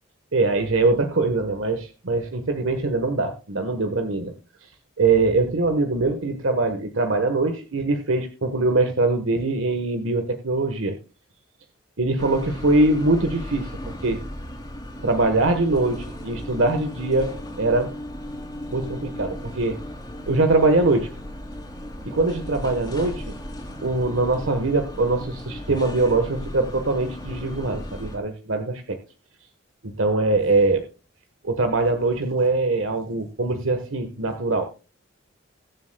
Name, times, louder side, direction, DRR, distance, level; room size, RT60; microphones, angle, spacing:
voice 1, 0.3-4.3 4.6-4.7 5.0-11.0 12.0-14.2 15.0-17.9 18.7-19.8 20.3-21.1 22.0-23.3 23.8-29.0 29.8-30.9 31.4-34.7, right 2 dB, 75° right, 6 dB, 1.3 m, -22 dB
sound 1, 12.2-28.2, equal, 20° left, 2.9 m, -36 dB
21.5 x 7.5 x 2.3 m, 0.31 s
head